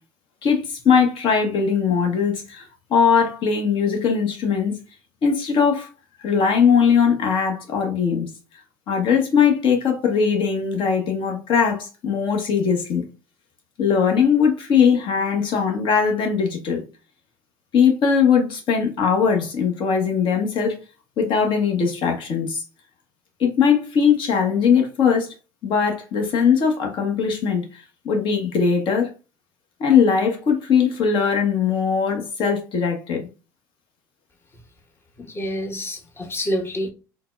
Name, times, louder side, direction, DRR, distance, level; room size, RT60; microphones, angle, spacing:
voice 1, 0.4-2.6 2.9-4.7 5.2-5.9 6.2-8.3 8.9-13.0 13.8-16.8 17.7-20.8 21.2-22.6 23.4-25.3 25.6-29.1 29.8-33.3, left 6 dB, 55° left, 1.1 m, -20 dB
voice 2, 35.2-36.9, equal, 25° left, 0.9 m, -27 dB
3.9 x 2.3 x 2.4 m
hypercardioid pair, 70°, 11 cm